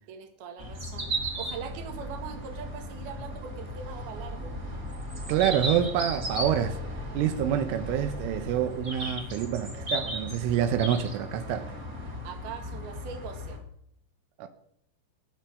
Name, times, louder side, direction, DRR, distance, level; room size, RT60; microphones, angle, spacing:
voice 1, 0.1-1.1 1.4-4.5 12.2-13.6, right 6 dB, 60° right, 3.4 m, -41 dB
sound 1, 0.6-13.6, equal, 25° right, 1.9 m, -36 dB
voice 2, 5.3-6.8 7.2-11.7 14.4-14.5, right 10 dB, 85° right, 3.5 m, -27 dB
23.0 x 7.7 x 6.3 m
omnidirectional pair, 5.6 m